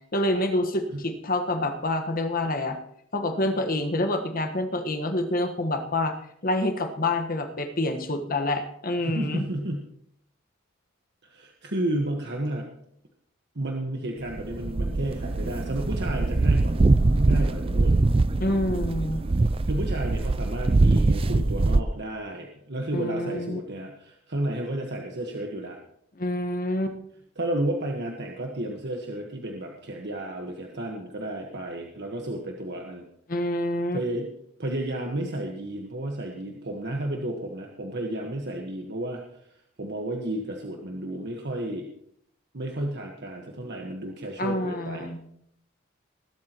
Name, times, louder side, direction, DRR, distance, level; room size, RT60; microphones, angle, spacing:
voice 1, 0.1-2.8 3.1-6.1 6.4-9.5 18.4-19.2 22.9-23.6 26.2-27.0 33.3-34.0 44.4-45.2, left 1 dB, 45° left, 7 dB, 1.5 m, -27 dB
voice 2, 9.0-9.8 11.2-12.7 13.5-18.0 19.3-25.8 27.4-33.0 33.9-34.3 34.6-39.2 39.8-41.9 42.5-45.1, right 1 dB, 55° right, 1 dB, 1.5 m, -32 dB
sound 1, 14.3-21.8, right 2 dB, 30° right, 0.4 m, -23 dB
20.5 x 12.0 x 3.1 m, 0.69 s
head